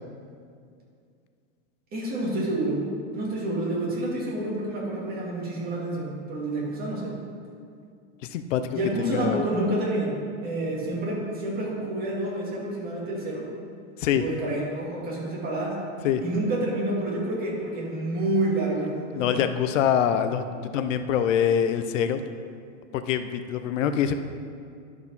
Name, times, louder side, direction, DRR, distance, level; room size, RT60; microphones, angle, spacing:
voice 1, 1.9-2.8 3.1-7.1 8.7-10.1 10.4-13.5 14.1-15.8 16.2-19.4, right 1 dB, 25° right, -4 dB, 2.2 m, -28 dB
voice 2, 8.3-9.4 14.0-14.2 16.0-16.2 19.1-20.5 20.7-22.2 22.9-24.1, left 9 dB, 90° left, 9 dB, 0.7 m, -24 dB
11.5 x 4.9 x 5.4 m, 2.3 s
supercardioid pair, 155°, 37 cm